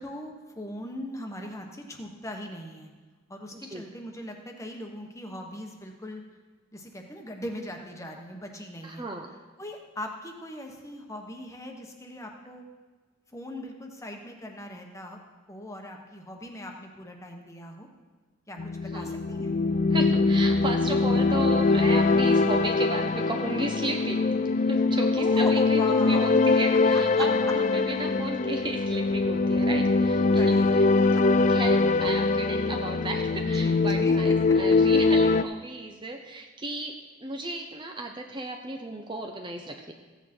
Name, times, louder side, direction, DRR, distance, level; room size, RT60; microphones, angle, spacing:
voice 1, 0.0-2.9 3.3-6.2 6.7-9.0 9.6-12.6 13.3-15.2 15.5-17.9 18.5-19.6 25.2-26.5 26.9-27.2 30.3-30.8 31.1-31.2 33.5-34.5, left 1 dB, 15° left, 2 dB, 1.2 m, -40 dB
voice 2, 3.5-3.8 8.8-9.3 18.9-19.2 19.9-30.8 31.5-39.9, right 2 dB, 25° right, 3 dB, 0.7 m, -34 dB
sound 1, 18.6-35.4, left 3 dB, 35° left, 0.3 m, -23 dB
15.5 x 8.7 x 4.4 m, 1.3 s
head